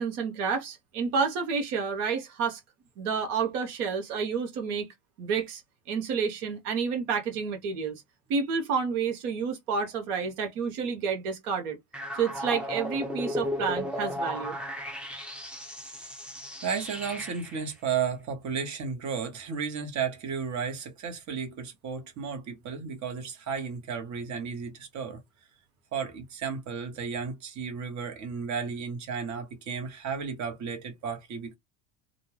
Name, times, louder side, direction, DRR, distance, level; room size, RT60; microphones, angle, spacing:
voice 1, 0.0-2.6 3.0-4.9 5.2-5.6 5.9-8.0 8.3-11.8 12.2-14.5, right 5 dB, 75° right, 1.1 m, -29 dB
sound 1, 11.9-17.6, left 1 dB, 5° right, 0.4 m, -35 dB
voice 2, 16.6-25.2 25.9-31.5, right 6 dB, 40° right, 1.2 m, -33 dB
2.6 x 2.2 x 3.1 m
supercardioid pair, 100°, 45 cm